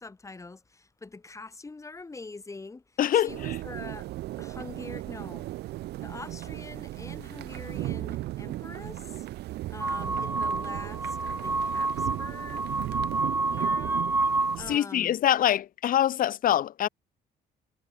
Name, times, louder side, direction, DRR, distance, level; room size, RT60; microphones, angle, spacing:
voice 1, 0.0-4.1 4.4-5.5 6.0-9.3 9.7-12.7 13.5-14.1 14.5-15.2, left 3 dB, 20° left, 3.5 m, -44 dB
voice 2, 3.0-3.6 14.7-16.9, left 11 dB, 55° left, 1.2 m, -24 dB
sound 1, 3.3-14.8, right 16 dB, 75° right, 1.7 m, -36 dB
sound 2, 9.8-14.6, right 3 dB, 10° right, 0.7 m, -29 dB
cardioid pair, 110°, 17 cm